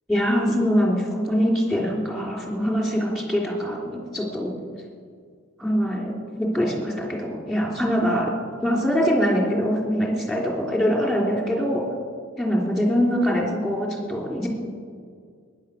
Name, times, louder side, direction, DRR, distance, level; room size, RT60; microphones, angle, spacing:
voice 1, 0.1-4.5 5.6-8.3 8.6-11.8 12.4-14.5, equal, ahead, -1 dB, 3.3 m, -23 dB
20.0 x 10.5 x 6.5 m, 2.1 s
head